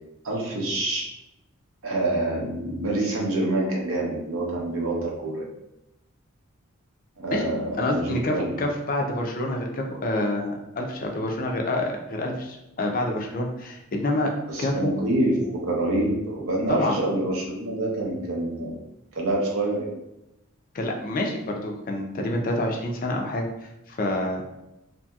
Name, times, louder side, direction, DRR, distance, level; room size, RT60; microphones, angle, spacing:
voice 1, 0.2-1.0 1.8-5.4 7.2-8.5 14.5-18.8 19.1-19.9, right 1 dB, 65° right, -2 dB, 0.7 m, -26 dB
voice 2, 7.8-14.3 14.6-14.9 16.7-17.0 20.7-24.4, left 1 dB, 40° left, 1 dB, 0.4 m, -27 dB
2.8 x 2.7 x 2.3 m, 0.90 s
head